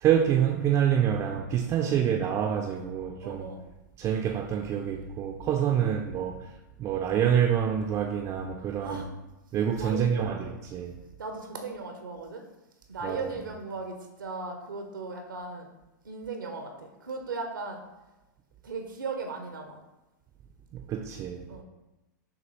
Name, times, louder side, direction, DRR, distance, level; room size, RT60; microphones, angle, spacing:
voice 1, 0.0-3.5 4.0-9.0 9.5-10.9 13.0-13.3 20.7-21.5, right 9 dB, 25° right, 0.4 m, -27 dB
voice 2, 3.2-3.6 5.7-5.8 8.8-9.1 9.8-10.5 11.2-12.4 12.9-15.7 16.0-17.8 18.6-19.8 21.5-21.6, right 3 dB, 85° right, 0.6 m, -37 dB
6.2 x 2.4 x 3.0 m
hypercardioid pair, 105°, 11 cm